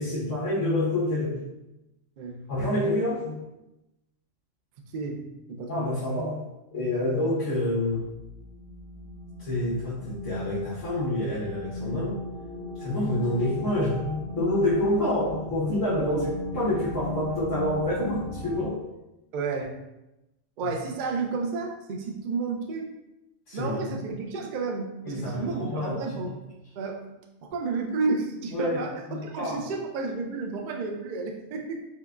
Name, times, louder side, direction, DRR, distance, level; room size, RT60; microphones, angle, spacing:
voice 1, 0.0-1.5 2.5-3.5 5.7-8.1 9.4-12.2 12.8-16.2 16.5-18.8 20.6-20.7 23.5-24.0 25.0-26.3 28.5-28.8 29.1-29.6, left 1 dB, 75° left, -11 dB, 1.5 m, -28 dB
voice 2, 4.9-5.9 16.0-16.3 19.3-19.8 20.6-22.9 23.5-26.3 26.8-27.1 27.4-31.7, right 4 dB, 90° right, 2 dB, 0.4 m, -31 dB
sound 1, 7.8-18.7, left 1 dB, 50° right, 0.9 m, -37 dB
4.6 x 2.2 x 2.4 m, 0.94 s
omnidirectional pair, 1.4 m